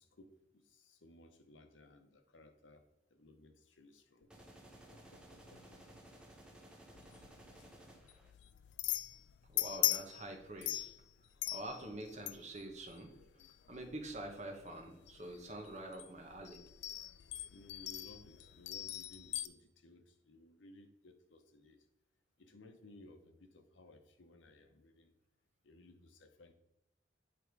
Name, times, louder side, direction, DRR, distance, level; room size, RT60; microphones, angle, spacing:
voice 1, 0.0-2.8 3.1-4.3 5.1-6.4 11.7-11.9 17.5-21.8 22.4-25.1 25.6-26.5, left 2 dB, 90° left, 0.8 m, -60 dB
sound 1, 4.3-8.3, right 1 dB, 5° right, 0.8 m, -57 dB
sound 2, 6.9-19.5, left 15 dB, 65° left, 0.3 m, -41 dB
voice 2, 9.5-10.9 11.5-13.1 13.7-16.6, right 1 dB, 40° right, 1.1 m, -46 dB
8.5 x 3.5 x 4.6 m
head